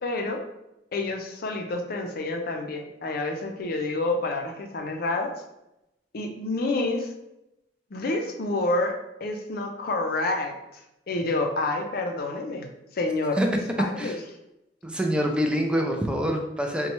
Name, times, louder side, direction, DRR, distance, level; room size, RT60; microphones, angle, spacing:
voice 1, 0.0-0.4 0.9-5.3 6.1-7.1 7.9-8.9 9.2-10.5 11.1-12.7 12.9-13.4 13.8-14.2, left 2 dB, 55° left, 3 dB, 0.5 m, -28 dB
voice 2, 14.8-16.9, equal, 5° right, 2 dB, 0.4 m, -25 dB
4.1 x 2.2 x 2.9 m, 0.88 s
head